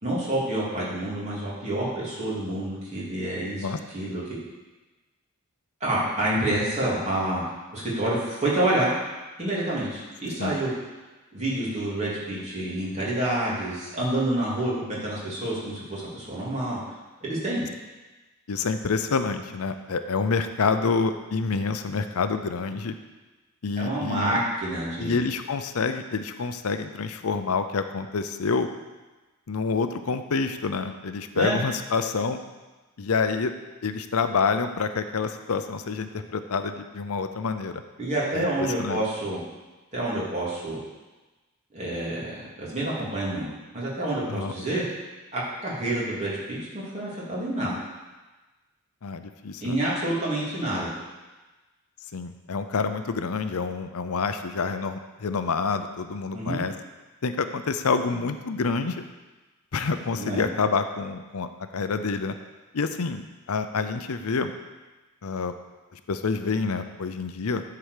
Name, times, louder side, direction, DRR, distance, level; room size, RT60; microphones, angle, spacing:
voice 1, 0.0-3.7 3.9-4.2 5.8-8.9 9.4-10.7 11.3-16.8 17.2-17.6 23.8-25.2 31.3-31.6 38.0-39.4 39.9-40.8 41.7-43.5 43.7-44.8 45.3-47.8 49.6-50.9 56.3-56.6 60.2-60.5, right 1 dB, 30° right, -7 dB, 3.1 m, -28 dB
voice 2, 18.5-22.9 23.6-24.4 25.0-28.7 29.5-32.4 33.0-33.5 33.8-37.8 38.3-38.5 38.8-39.0 44.3-44.5 49.0-49.8 52.1-56.7 57.2-59.1 59.7-61.5 61.7-62.3 62.7-64.5 65.2-65.5 65.9-67.6, left 4 dB, 75° left, 9 dB, 0.6 m, -27 dB
11.0 x 4.8 x 6.6 m, 1.2 s
head